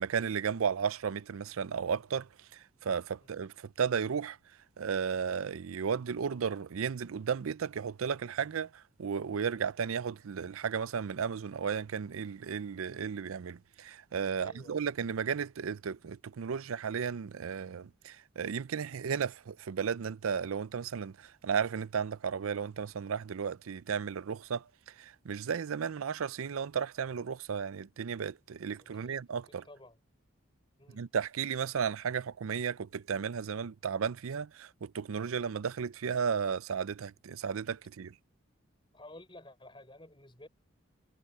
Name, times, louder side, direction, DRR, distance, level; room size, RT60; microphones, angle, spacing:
voice 1, 0.0-4.4 4.8-24.6 25.0-29.6 30.9-38.1, right 6 dB, 90° right, 0.5 m, -34 dB
voice 2, 14.4-14.8 28.8-30.0 30.8-31.0 38.9-40.5, left 1 dB, 25° left, 5.0 m, -53 dB
head